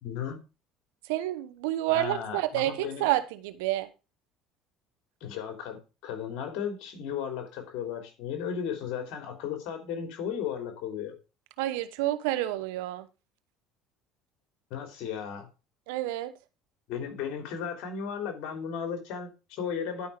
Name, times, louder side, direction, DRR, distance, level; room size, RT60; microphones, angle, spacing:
voice 1, 0.0-0.4 1.9-3.1 5.2-11.1 14.7-15.5 16.9-20.1, left 7 dB, 70° left, 3.5 m, -35 dB
voice 2, 1.1-3.9 11.6-13.1 15.9-16.3, right 15 dB, 85° right, 1.0 m, -29 dB
11.0 x 5.6 x 5.0 m
supercardioid pair, 90°, 0 cm